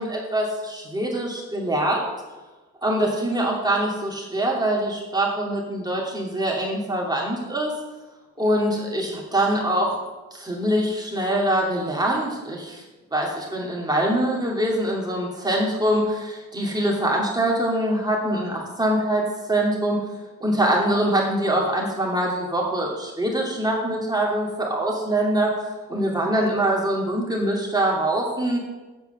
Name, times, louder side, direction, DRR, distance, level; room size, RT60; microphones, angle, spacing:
voice 1, 0.0-2.1 2.8-7.7 8.4-10.0 10.3-12.8 13.1-20.0 20.4-25.5 25.9-28.6, right 1 dB, 15° right, -3 dB, 2.6 m, -24 dB
8.0 x 7.1 x 6.8 m, 1.2 s
cardioid pair, 90°, 30 cm